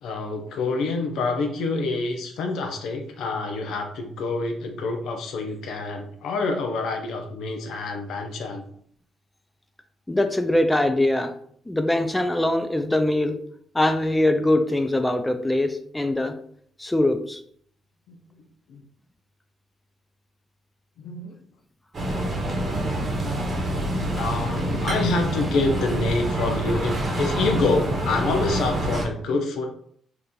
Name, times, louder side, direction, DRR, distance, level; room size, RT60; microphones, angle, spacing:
voice 1, 0.0-8.6 18.1-18.2 18.7-18.8 21.0-21.4 23.7-29.7, left 3 dB, 80° left, 4 dB, 0.5 m, -27 dB
voice 2, 10.1-11.3 11.7-13.4 13.7-16.3 16.8-17.4, left 1 dB, 10° left, 8 dB, 0.4 m, -22 dB
sound 1, 21.9-29.1, right 1 dB, 40° right, 0.9 m, -26 dB
2.8 x 2.5 x 3.6 m, 0.63 s
cardioid pair, 90°, 0 cm